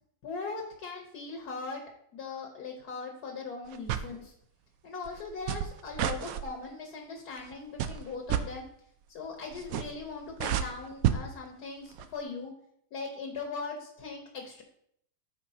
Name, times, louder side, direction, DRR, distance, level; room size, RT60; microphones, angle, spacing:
voice 1, 0.2-1.8 2.1-4.3 4.8-8.6 9.1-12.5 12.9-14.6, left 4 dB, 60° left, 1 dB, 1.6 m, -39 dB
sound 1, 3.7-4.1 5.1-6.5 7.4-7.5 7.8-8.4 9.5-10.0 10.3-11.2 11.9-12.1, right 10 dB, 85° right, 0.7 m, -30 dB
13.0 x 4.6 x 2.8 m, 0.69 s
omnidirectional pair, 2.0 m